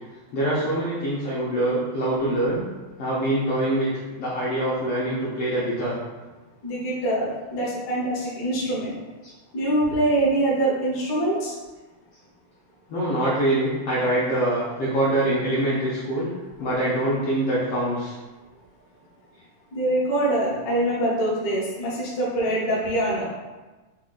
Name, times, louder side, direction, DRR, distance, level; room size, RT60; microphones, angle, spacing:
voice 1, 0.3-2.6 3.0-3.9 4.2-6.0 12.9-16.3 16.6-18.1, right 1 dB, 75° left, -8 dB, 1.4 m, -24 dB
voice 2, 6.6-8.9 9.5-11.5 16.6-16.7 19.7-23.3, right 1 dB, 60° left, -6 dB, 1.0 m, -24 dB
4.9 x 2.4 x 3.8 m, 1.2 s
omnidirectional pair, 3.5 m